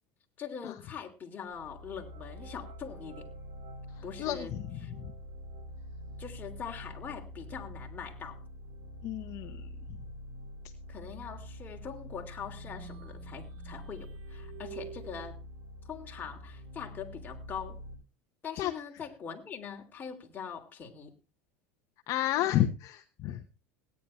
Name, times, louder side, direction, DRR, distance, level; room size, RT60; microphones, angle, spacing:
voice 1, 0.4-3.3 4.0-4.5 4.8-4.9 6.2-8.4 10.9-15.4 15.9-17.8 18.4-21.1, left 7 dB, 25° left, 2 dB, 3.2 m, -42 dB
sound 1, 1.5-17.9, equal, 65° right, 7.2 m, -46 dB
voice 2, 4.2-4.6 9.0-9.7 18.6-18.7 22.1-23.4, left 13 dB, 50° left, 7 dB, 1.1 m, -30 dB
sound 2, 12.3-15.3, right 9 dB, 85° right, 3.0 m, -49 dB
17.0 x 10.0 x 4.4 m, 0.32 s
supercardioid pair, 130°, 7 cm